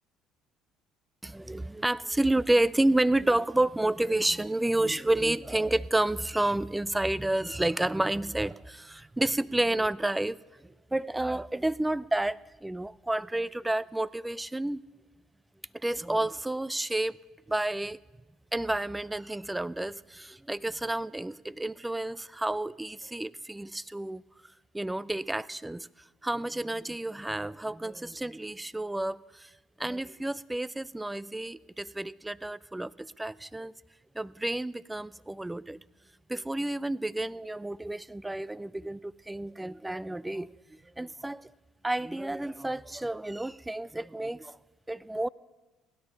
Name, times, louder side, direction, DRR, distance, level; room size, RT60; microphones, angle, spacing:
voice 1, 1.2-10.4 10.6-14.8 15.7-17.2 17.5-18.0 18.5-24.2 24.7-29.5 29.8-33.7 34.1-35.8 36.3-41.5 41.8-44.6 44.9-45.3, right 1 dB, 10° right, 21 dB, 0.4 m, -30 dB
16.5 x 10.5 x 6.8 m, 1.2 s
hypercardioid pair, 55°, 0 cm